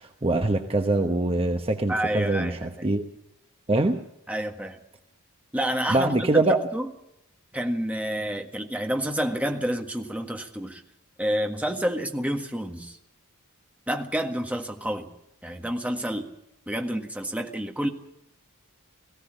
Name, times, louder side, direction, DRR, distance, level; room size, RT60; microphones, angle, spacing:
voice 1, 0.0-3.0 3.7-4.0 5.9-6.6, right 2 dB, 25° right, 5 dB, 1.0 m, -23 dB
voice 2, 1.9-2.9 4.3-4.8 5.5-6.9 7.5-10.8 11.2-13.0 13.9-15.1 15.4-16.3 16.7-17.9, equal, 5° right, 3 dB, 1.6 m, -29 dB
18.0 x 16.5 x 8.9 m, 0.85 s
head